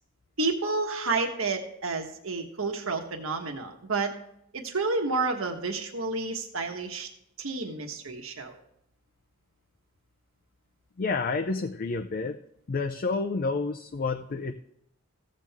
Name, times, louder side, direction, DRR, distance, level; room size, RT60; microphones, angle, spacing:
voice 1, 0.4-4.1 4.5-7.1 7.4-8.6, right 3 dB, 75° right, 4 dB, 1.4 m, -30 dB
voice 2, 11.0-12.4 12.7-14.5, left 3 dB, 45° left, 6 dB, 0.5 m, -29 dB
15.0 x 7.6 x 3.6 m, 0.76 s
head